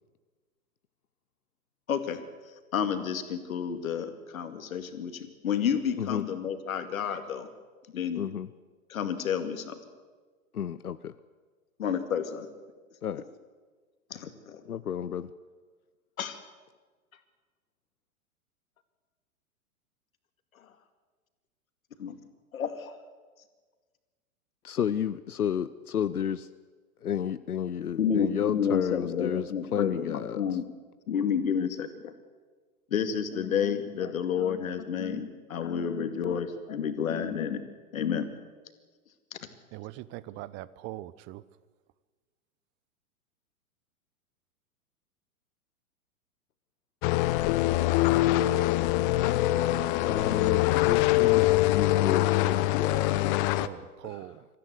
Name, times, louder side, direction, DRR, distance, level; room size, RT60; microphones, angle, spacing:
voice 1, 1.9-2.2 2.7-7.5 7.9-8.2 8.9-9.8 11.8-12.5 14.1-14.6 16.2-16.4 22.0-22.1 22.5-22.9 28.0-30.6 31.1-32.1 32.9-37.6 37.9-38.3, left 7 dB, 65° left, 8 dB, 2.4 m, -30 dB
voice 2, 8.2-8.5 10.5-11.1 13.0-13.2 14.6-15.3 24.6-26.5 27.0-30.6 50.1-53.4 54.0-54.4, left 9 dB, 85° left, 14 dB, 0.8 m, -32 dB
voice 3, 39.7-41.4 53.5-54.5, right 16 dB, 25° right, 18 dB, 0.7 m, -41 dB
sound 1, 47.0-53.7, left 16 dB, 35° left, 0.9 m, -24 dB
24.0 x 14.5 x 8.1 m, 1.4 s
figure-of-eight pair, 110°, 44 cm